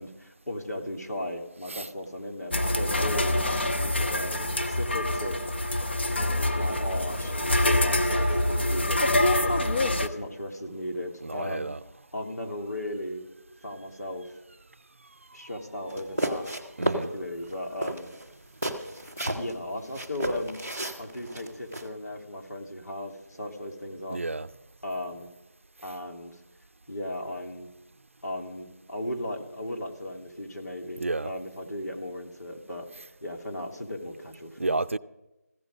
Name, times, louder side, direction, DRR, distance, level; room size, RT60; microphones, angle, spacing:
voice 1, 0.0-3.4 3.8-5.4 6.5-9.7 10.0-11.7 12.1-13.2 13.6-14.3 15.3-16.5 16.9-18.1 19.4-20.6 21.0-24.2 24.8-25.3 25.8-26.4 26.9-27.7 28.2-32.9 33.2-34.8, left 1 dB, 85° left, 3.1 m, -36 dB
sound 1, 2.5-10.1, left 1 dB, 40° left, 1.1 m, -25 dB
voice 2, 11.2-11.8 16.4-16.5 16.8-17.1 20.8-20.9 24.1-24.5 31.0-31.3 33.0-33.1 34.6-35.0, right 2 dB, 50° right, 0.5 m, -31 dB
sound 2, 15.9-17.1 17.4-17.5 17.8-19.5 19.9-21.9, right 1 dB, 5° left, 0.4 m, -32 dB
15.0 x 14.5 x 5.2 m
figure-of-eight pair, 175°, 9 cm